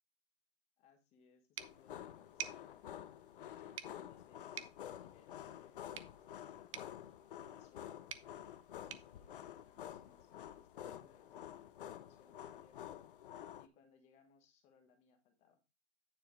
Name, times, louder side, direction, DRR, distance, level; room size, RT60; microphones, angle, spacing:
voice 1, 0.8-3.0 3.4-7.0 7.4-8.1 8.7-12.9 13.6-15.8, left 5 dB, 20° left, 6 dB, 1.2 m, -69 dB
sound 1, 1.6-13.7, left 11 dB, 55° left, 0.8 m, -50 dB
sound 2, 1.6-10.2, right 10 dB, 30° right, 0.6 m, -53 dB
9.4 x 4.5 x 5.0 m, 0.26 s
hypercardioid pair, 155°, 32 cm